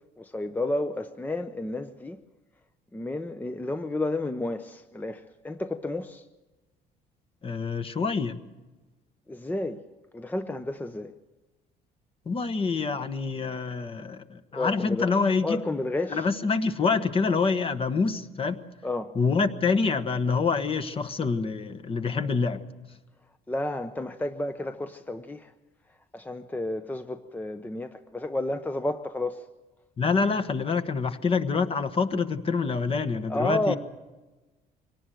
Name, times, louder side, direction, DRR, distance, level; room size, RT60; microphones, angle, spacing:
voice 1, 0.2-2.2 2.9-6.3 9.3-9.8 10.1-11.1 14.5-15.1 15.4-16.3 18.8-19.1 23.5-25.5 26.1-29.5 33.3-33.7, left 2 dB, 10° left, 9 dB, 0.7 m, -31 dB
voice 2, 7.4-8.4 12.2-15.6 16.1-18.6 19.1-22.6 30.0-33.8, left 4 dB, 35° left, 10 dB, 1.2 m, -26 dB
24.0 x 18.0 x 7.7 m, 1.2 s
cardioid pair, 110°, 17 cm